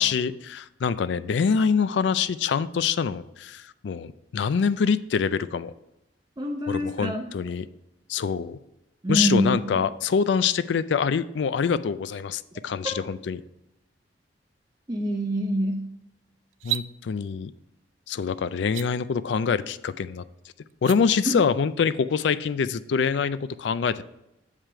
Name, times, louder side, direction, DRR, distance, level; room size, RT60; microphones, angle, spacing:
voice 1, 0.0-5.7 6.7-7.7 8.1-8.6 9.1-13.4 16.6-17.5 18.1-20.2 20.8-24.0, left 6 dB, 70° left, 15 dB, 0.4 m, -25 dB
voice 2, 6.4-7.3 9.0-9.8 14.9-15.9 21.3-21.4, equal, 20° right, 0 dB, 0.7 m, -26 dB
sound 1, 16.5-16.9 18.6-18.9 20.7-21.0, right 15 dB, 85° right, 0.3 m, -30 dB
7.4 x 5.0 x 4.5 m, 0.88 s
head